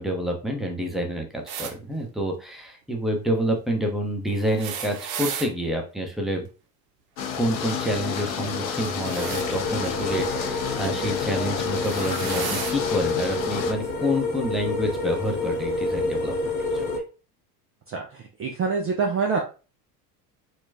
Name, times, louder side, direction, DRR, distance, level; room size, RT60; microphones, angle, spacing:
voice 1, 0.0-6.5 7.4-16.8, equal, ahead, 1 dB, 0.8 m, -28 dB
sound 1, 1.5-1.7 4.4-5.5 8.7-9.5 10.8-11.1 11.7-12.8 13.8-13.9 15.1-15.2, right 7 dB, 65° right, 0.7 m, -34 dB
sound 2, 7.2-13.7, left 6 dB, 90° left, 0.6 m, -30 dB
sound 3, 9.2-17.0, left 2 dB, 35° left, 0.8 m, -28 dB
voice 2, 17.9-19.4, right 5 dB, 30° right, 2 dB, 0.5 m, -26 dB
4.4 x 2.3 x 2.6 m, 0.34 s
hypercardioid pair, 70°, 50 cm